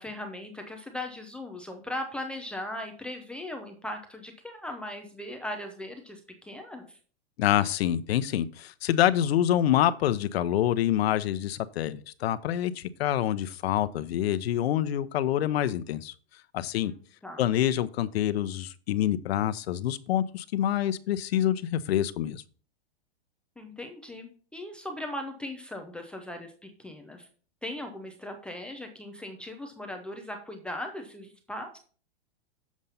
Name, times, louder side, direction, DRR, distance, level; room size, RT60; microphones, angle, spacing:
voice 1, 0.0-7.0 16.8-17.0 17.2-17.5 23.6-27.3 27.6-31.8, left 1 dB, 5° left, 0.3 m, -38 dB
voice 2, 7.4-16.1 16.5-16.9 17.4-22.4, left 11 dB, 70° left, 0.8 m, -26 dB
7.3 x 5.3 x 5.6 m
supercardioid pair, 155°, 32 cm